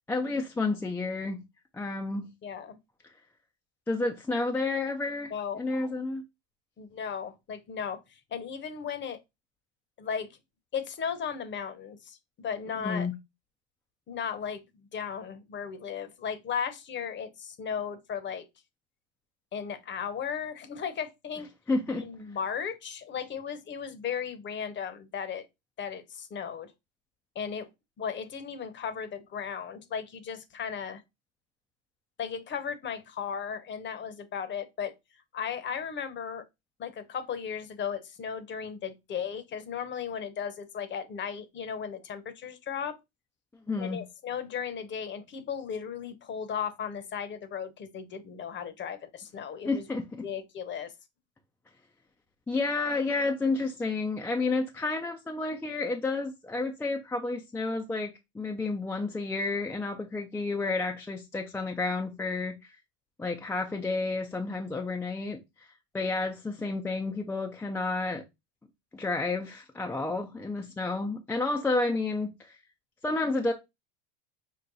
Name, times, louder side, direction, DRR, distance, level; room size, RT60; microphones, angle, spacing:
voice 1, 0.1-1.4 1.7-2.3 3.9-6.2 12.8-13.1 21.7-22.1 43.7-44.0 49.6-50.3 52.5-62.6 63.2-65.4 65.9-68.2 68.9-72.6 73.0-73.5, left 3 dB, 5° left, 0.4 m, -30 dB
voice 2, 2.4-2.8 5.3-5.6 6.8-8.0 8.3-9.2 10.0-10.4 10.7-13.1 14.1-14.6 14.9-18.5 19.5-21.5 22.0-25.4 25.8-26.7 27.3-27.7 28.0-31.0 32.2-34.9 35.3-36.4 36.8-42.9 43.8-49.9 50.2-50.9, left 7 dB, 30° left, 0.8 m, -36 dB
5.5 x 2.1 x 3.9 m
supercardioid pair, 105°, 38 cm